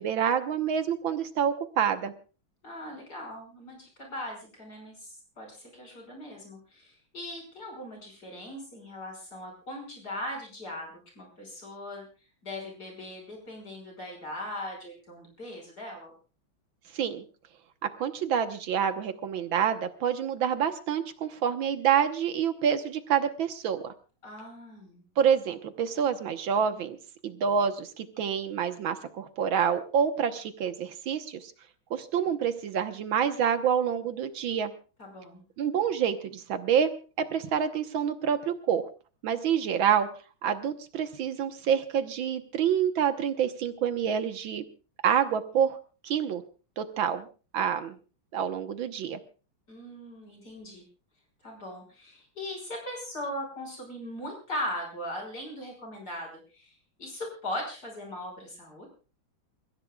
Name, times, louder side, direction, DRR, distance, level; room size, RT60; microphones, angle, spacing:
voice 1, 0.0-2.1 16.9-17.2 18.0-23.9 25.2-27.0 27.2-31.5 31.9-34.7 35.6-38.9 39.2-40.1 40.4-44.6 45.0-45.8 46.0-46.4 46.8-47.3 47.5-48.0 48.3-49.2, right 8 dB, 75° right, 9 dB, 1.9 m, -27 dB
voice 2, 2.6-12.1 12.4-16.1 24.2-25.1 35.0-35.4 49.7-50.8 51.4-56.7 57.0-58.9, left 1 dB, 50° left, 1 dB, 6.2 m, -39 dB
28.5 x 15.5 x 2.3 m, 0.35 s
omnidirectional pair, 2.2 m